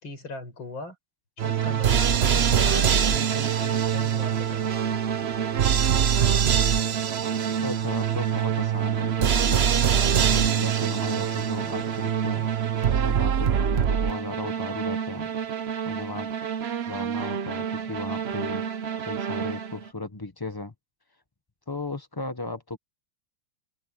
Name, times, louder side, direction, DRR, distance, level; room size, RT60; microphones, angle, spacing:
voice 1, 0.0-0.9 1.4-4.7, left 2 dB, 65° left, 6.6 m, -39 dB
sound 1, 1.4-19.9, right 8 dB, 65° right, 0.6 m, -24 dB
voice 2, 7.6-9.6 10.2-12.5 12.9-15.3 15.8-16.3 16.9-18.6 19.0-20.7 21.7-22.8, left 2 dB, 15° left, 1.1 m, -35 dB
open air
omnidirectional pair, 2.3 m